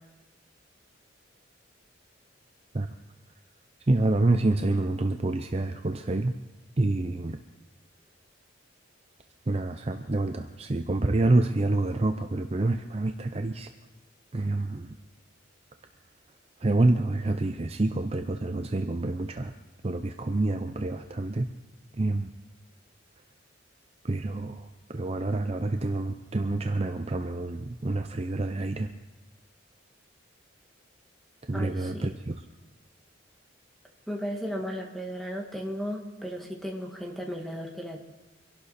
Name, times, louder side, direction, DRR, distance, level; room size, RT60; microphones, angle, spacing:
voice 1, 3.9-6.4 6.8-7.4 9.5-13.7 14.3-14.9 16.6-19.5 19.8-21.5 21.9-22.3 24.0-28.9 31.5-32.4, right 2 dB, 30° right, 7 dB, 0.6 m, -27 dB
voice 2, 31.5-32.2 34.1-38.0, equal, ahead, 1 dB, 1.9 m, -35 dB
24.5 x 11.5 x 4.2 m, 1.1 s
head